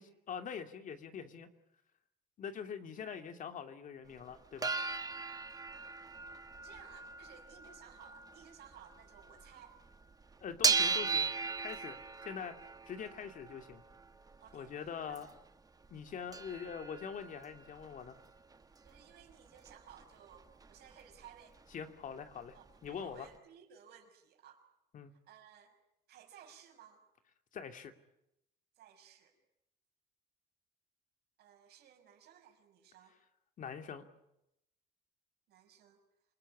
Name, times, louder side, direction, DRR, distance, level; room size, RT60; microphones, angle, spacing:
voice 1, 0.0-1.5 2.4-4.8 10.4-11.3 11.6-12.0 12.2-13.8 14.5-15.3 15.9-18.2 21.7-22.5 22.8-23.3 24.9-25.1 27.5-27.9 33.6-34.0, left 7 dB, 50° left, 7 dB, 2.7 m, -44 dB
sound 1, 4.3-9.5 9.8-15.4 15.8-15.9 16.1-20.0 20.3-21.3 21.6-21.7 21.9-22.9 23.3-23.4, right 4 dB, 20° right, 1.4 m, -38 dB
voice 2, 6.3-9.8 14.4-14.8 15.1-15.4 18.8-21.6 22.5-24.6 25.3-25.7 26.1-27.0 28.8-29.3 31.4-33.2 35.5-36.0, right 9 dB, 70° right, 5 dB, 6.0 m, -58 dB
28.0 x 20.0 x 9.9 m, 0.83 s
cardioid pair, 110°, 17 cm